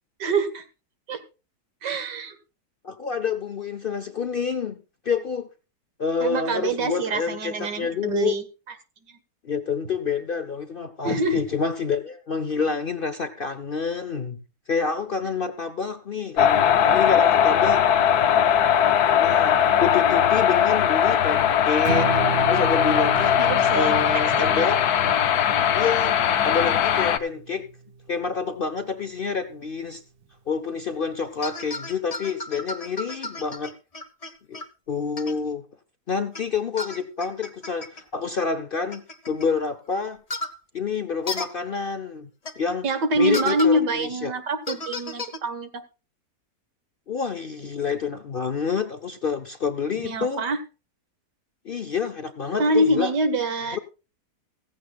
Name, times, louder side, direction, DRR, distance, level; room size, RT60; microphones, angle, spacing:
voice 1, 0.2-0.6 1.1-1.2 1.8-2.3 6.2-8.4 11.0-11.4 23.4-24.0 24.4-24.7 42.8-45.8 49.9-50.6 52.6-53.8, right 2 dB, 90° right, 2.1 m, -25 dB
voice 2, 2.8-5.5 6.0-8.4 9.4-14.4 14.7-17.8 19.2-22.1 22.5-23.4 23.7-24.8 25.7-27.7 28.1-30.0 30.5-33.7 34.5-34.6 34.9-35.7 36.1-40.2 40.7-42.3 42.6-42.9 43.2-44.3 47.1-50.5 51.6-53.1 53.7-53.8, left 5 dB, 50° left, 0.6 m, -28 dB
sound 1, 16.4-27.2, left 9 dB, 70° left, 1.3 m, -20 dB
Strum, 21.9-28.1, right 5 dB, 50° right, 0.7 m, -34 dB
sound 2, 31.4-34.7 35.2-35.3 36.3-36.4 36.8-38.0 38.9-39.5 40.3-40.6 41.3-41.5 42.5-42.6 43.3-43.7 44.7-45.4, left 2 dB, 25° left, 0.9 m, -33 dB
16.0 x 15.0 x 2.4 m
omnidirectional pair, 1.8 m